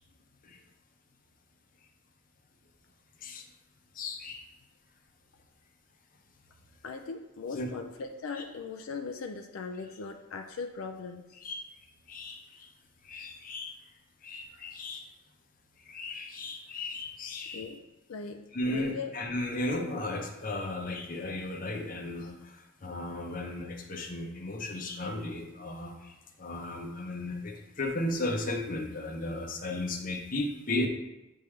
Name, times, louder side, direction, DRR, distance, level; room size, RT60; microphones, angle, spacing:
voice 1, 3.9-4.4 7.5-7.7 11.4-11.7 12.1-12.7 13.0-13.8 14.2-15.1 15.8-17.7 18.5-30.9, left 2 dB, 40° left, 3 dB, 0.7 m, -35 dB
voice 2, 6.8-11.2 17.5-17.8 18.1-19.1, left 4 dB, 75° left, 5 dB, 0.4 m, -39 dB
8.9 x 3.5 x 3.2 m, 1.0 s
head